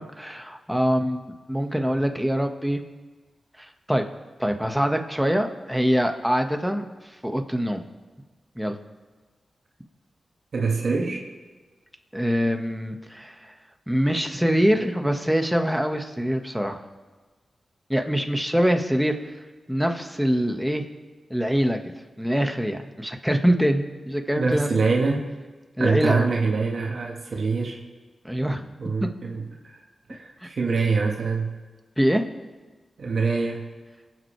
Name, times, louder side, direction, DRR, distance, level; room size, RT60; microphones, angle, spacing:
voice 1, 0.0-2.8 3.6-4.0 4.4-6.9 7.2-7.8 8.6-8.8 12.1-13.5 13.9-16.8 17.9-19.2 19.7-20.8 21.3-21.8 22.2-24.7 25.8-26.3 28.3-28.6 29.0-29.1 30.4-30.5 32.0-32.2, equal, 5° right, 4 dB, 1.7 m, -24 dB
voice 2, 10.5-11.3 24.4-25.3 25.8-27.8 28.8-29.8 30.1-31.6 33.0-33.7, right 4 dB, 70° right, 0 dB, 1.7 m, -25 dB
24.5 x 9.5 x 3.4 m, 1.3 s
cardioid pair, 45°, 0 cm